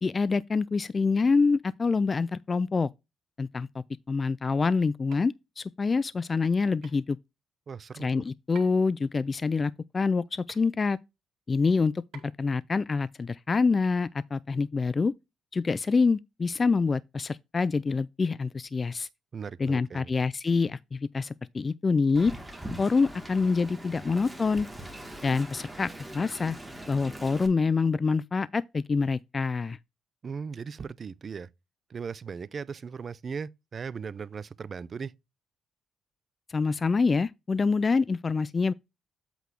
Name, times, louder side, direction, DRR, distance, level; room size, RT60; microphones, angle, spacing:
voice 1, 0.0-2.9 3.4-7.2 8.0-11.0 11.5-11.9 12.4-15.1 15.5-19.1 19.6-22.3 22.8-24.7 25.2-26.6 26.9-29.8 36.5-38.7, left 4 dB, 30° left, 0.3 m, -26 dB
sound 1, 5.1-5.3 6.8-7.0 8.6-8.9 10.5-10.7 12.1-12.5, right 8 dB, 75° right, 2.4 m, -49 dB
voice 2, 7.7-8.1 19.3-20.1 30.2-31.5 31.9-35.1, right 6 dB, 45° right, 0.5 m, -38 dB
Wind, 22.1-27.5, right 1 dB, 5° right, 2.0 m, -42 dB
8.2 x 4.1 x 4.6 m
cardioid pair, 90°, 0 cm